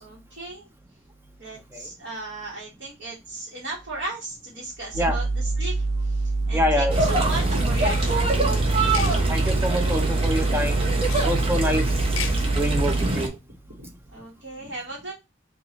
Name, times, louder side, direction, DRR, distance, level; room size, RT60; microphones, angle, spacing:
voice 1, 0.0-0.7 1.4-5.8 6.0-8.8 10.1-10.2 11.3-11.6 13.8-15.1, right 2 dB, 55° right, 1.2 m, -36 dB
sound 1, 4.9-13.1, right 3 dB, 75° right, 0.4 m, -25 dB
voice 2, 6.5-7.2 9.3-11.9 12.5-13.3, equal, 10° right, 0.4 m, -26 dB
sound 2, 6.9-13.3, right 2 dB, 30° right, 0.8 m, -25 dB
sound 3, 7.8-8.2 8.8-9.2 11.0-11.3 11.9-12.4, left 8 dB, 70° left, 0.6 m, -35 dB
4.0 x 2.4 x 2.9 m
head